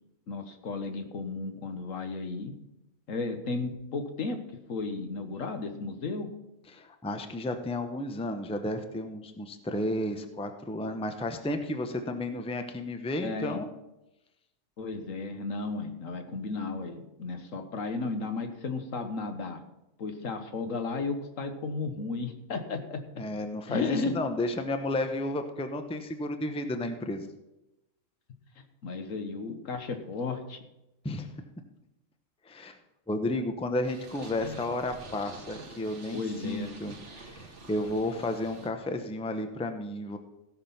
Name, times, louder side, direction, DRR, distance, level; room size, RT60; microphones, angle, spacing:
voice 1, 0.3-2.5 3.1-4.4 4.7-6.3 13.2-13.6 14.8-19.6 20.0-23.0 23.7-24.2 28.8-30.6 34.4-34.6 36.1-36.7, left 3 dB, 75° left, 7 dB, 1.5 m, -34 dB
voice 2, 6.7-13.7 23.2-27.3 31.0-31.3 32.4-32.8 33.1-40.2, left 1 dB, 5° left, 7 dB, 0.7 m, -32 dB
Purr, 33.8-38.7, right 3 dB, 60° right, 1.8 m, -47 dB
16.0 x 6.1 x 5.8 m, 0.92 s
omnidirectional pair, 1.4 m